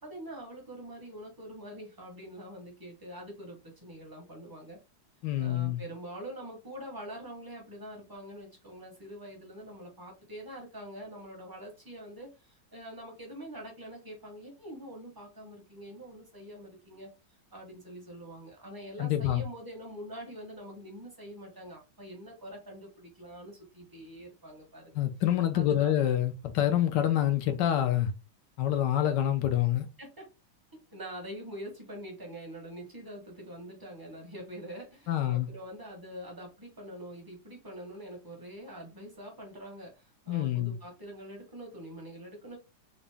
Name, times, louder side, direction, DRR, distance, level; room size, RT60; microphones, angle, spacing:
voice 1, 0.0-4.8 5.4-17.1 17.5-25.0 25.5-25.9 30.0-30.3 30.7-42.6, right 1 dB, 20° right, 0.7 m, -45 dB
voice 2, 5.2-5.8 19.0-19.4 24.9-28.1 28.6-29.9 35.1-35.5 40.3-40.7, left 11 dB, 70° left, 1.2 m, -27 dB
3.9 x 2.5 x 3.4 m
omnidirectional pair, 2.2 m